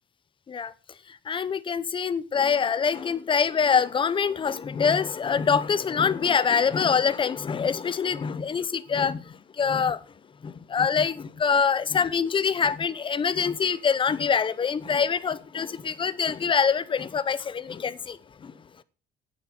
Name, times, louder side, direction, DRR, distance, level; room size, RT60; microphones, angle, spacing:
voice 1, 1.3-9.2 9.6-10.0 10.4-18.2 18.4-18.5, left 6 dB, 30° left, 0.8 m, -25 dB
9.1 x 8.2 x 5.9 m
cardioid pair, 110°, 17 cm